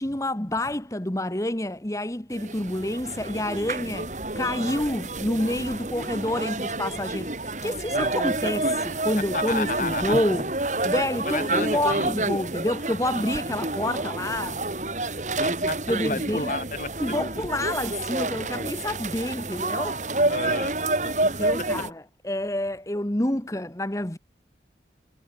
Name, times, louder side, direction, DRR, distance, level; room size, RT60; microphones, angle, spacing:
voice 1, 0.0-10.5 10.8-14.6 15.9-16.5 17.0-20.0 21.2-24.2, left 1 dB, 20° left, 1.2 m, -28 dB
sound 1, 2.3-21.9, right 2 dB, 45° right, 3.7 m, -29 dB
voice 2, 7.9-8.4 9.3-10.1 11.3-12.1 15.4-15.8 16.0-16.9 20.3-20.7 21.0-21.6, left 3 dB, 45° left, 5.0 m, -32 dB
head